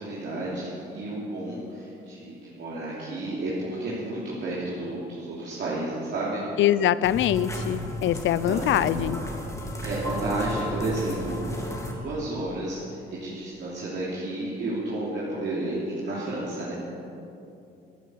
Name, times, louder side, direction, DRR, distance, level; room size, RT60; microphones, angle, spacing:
voice 1, 0.0-6.4 8.1-8.9 9.8-16.7, right 2 dB, 60° right, -7 dB, 3.1 m, -32 dB
voice 2, 6.6-9.2, left 11 dB, 75° left, 17 dB, 0.5 m, -23 dB
sound 1, 7.0-11.9, equal, 15° left, 2.4 m, -33 dB
13.5 x 10.0 x 7.9 m, 2.7 s
cardioid pair, 90°, 20 cm